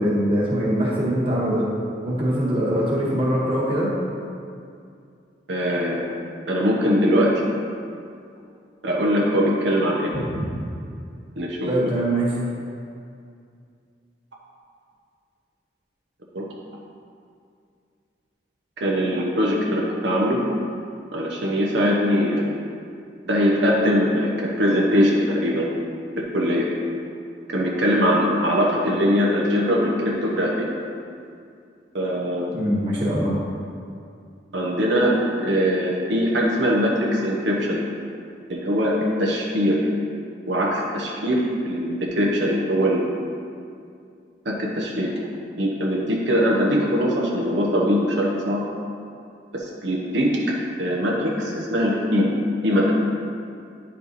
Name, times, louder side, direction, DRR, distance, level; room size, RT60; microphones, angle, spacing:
voice 1, 0.0-1.7 2.0-4.0 11.7-12.3 32.4-33.4, right 1 dB, 30° right, -6 dB, 1.5 m, -22 dB
voice 2, 5.5-6.1 6.5-7.3 8.8-10.1 11.4-11.7 16.3-16.4 18.8-20.4 21.1-22.6 23.2-24.3 24.6-25.7 26.2-26.7 27.5-30.6 31.9-32.5 34.5-37.8 38.5-39.9 40.5-43.1 44.4-45.1 45.6-48.6 49.5-50.3 50.8-52.3 52.6-52.9, equal, 75° right, -2 dB, 0.9 m, -21 dB
10.5 x 4.5 x 4.1 m, 2.4 s
head